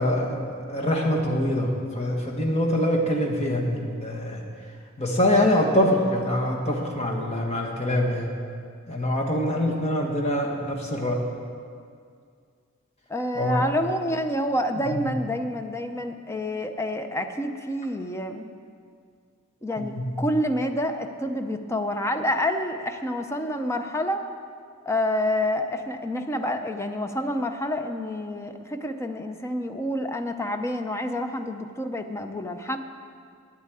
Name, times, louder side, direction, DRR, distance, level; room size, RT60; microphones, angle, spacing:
voice 1, 0.0-4.4 5.0-8.3 8.9-11.2 13.3-13.6 14.9-15.0 19.8-20.2, left 1 dB, 30° left, 0 dB, 1.6 m, -24 dB
voice 2, 13.1-18.5 19.6-24.2 24.9-32.8, left 1 dB, 15° left, 6 dB, 0.6 m, -28 dB
9.4 x 8.3 x 9.1 m, 2.2 s
head